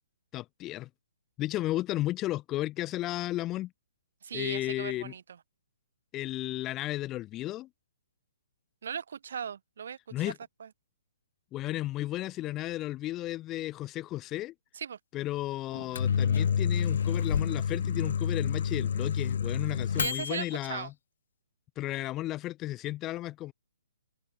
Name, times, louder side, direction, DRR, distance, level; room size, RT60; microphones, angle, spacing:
voice 1, 0.3-0.9 1.4-3.7 4.3-5.1 6.1-7.7 10.1-10.4 11.5-14.5 15.1-20.9 21.8-23.5, left 16 dB, 15° left, 1.1 m, -34 dB
voice 2, 4.2-5.4 8.8-10.3 10.6-10.7 14.7-15.0 19.9-20.9, right 7 dB, 55° right, 4.6 m, -38 dB
Microwave oven, 15.7-20.5, left 7 dB, 55° left, 0.7 m, -29 dB
hypercardioid pair, 170°, 0 cm